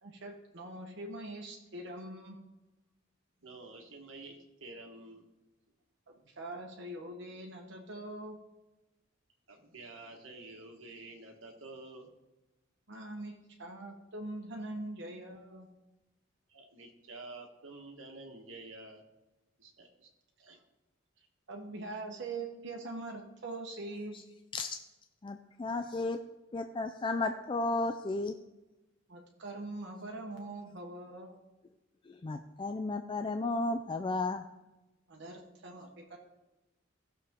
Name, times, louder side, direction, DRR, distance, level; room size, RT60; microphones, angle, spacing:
voice 1, 0.0-2.4 6.1-8.4 12.9-15.7 21.5-24.2 29.1-31.4 35.1-36.2, right 2 dB, 60° right, 0 dB, 1.2 m, -43 dB
voice 2, 3.4-5.3 9.5-12.1 16.5-19.0 19.6-20.1 20.4-20.6, right 2 dB, 80° right, 1 dB, 1.5 m, -49 dB
voice 3, 25.2-26.2 26.5-28.3 32.1-34.4, left 2 dB, 25° left, 7 dB, 0.4 m, -33 dB
16.0 x 6.8 x 3.7 m, 1.0 s
head